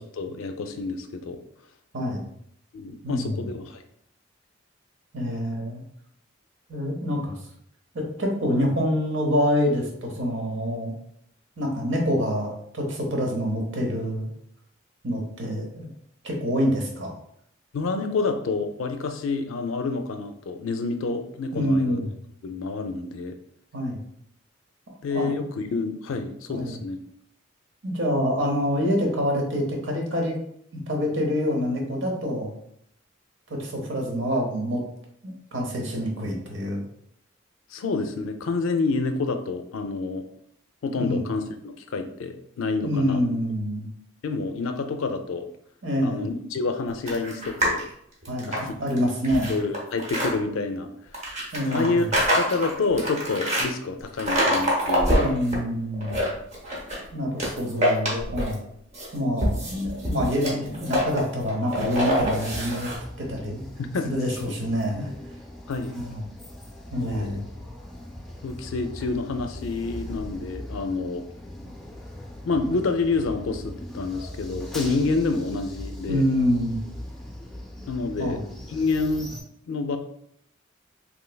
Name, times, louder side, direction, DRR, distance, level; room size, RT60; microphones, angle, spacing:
voice 1, 0.2-1.4 2.7-3.8 17.7-22.0 22.4-23.4 25.0-27.0 37.7-40.2 40.8-43.2 44.2-45.5 46.0-47.9 48.5-48.7 49.5-50.9 51.7-55.4 63.8-64.1 65.7-65.9 66.9-67.4 68.4-71.2 72.4-76.2 77.9-78.4 78.7-79.3 79.7-80.0, left 3 dB, 85° left, 7 dB, 0.4 m, -28 dB
voice 2, 1.9-2.2 3.0-3.4 5.1-5.8 6.7-7.4 7.9-10.9 11.6-14.3 15.0-15.9 16.2-17.1 21.5-22.1 23.7-24.0 25.1-25.3 26.5-26.8 27.8-30.4 30.7-32.5 33.5-34.8 35.2-36.8 41.0-41.2 42.8-43.9 45.8-46.3 48.3-49.6 51.5-52.1 55.2-56.2 57.1-58.6 59.1-62.9 63.2-63.7 64.0-65.1 65.9-66.2 66.9-67.5 76.1-76.8 78.2-78.4, equal, 70° right, 1 dB, 0.8 m, -26 dB
sound 1, 47.1-47.8 48.2-50.3 51.1-53.7 54.2-55.6 55.9-57.0 57.4-58.6 58.9-63.0, equal, 35° right, 0.8 m, -25 dB
sound 2, 62.6-79.4, left 1 dB, ahead, 0.4 m, -40 dB
3.2 x 2.9 x 2.2 m, 0.70 s
head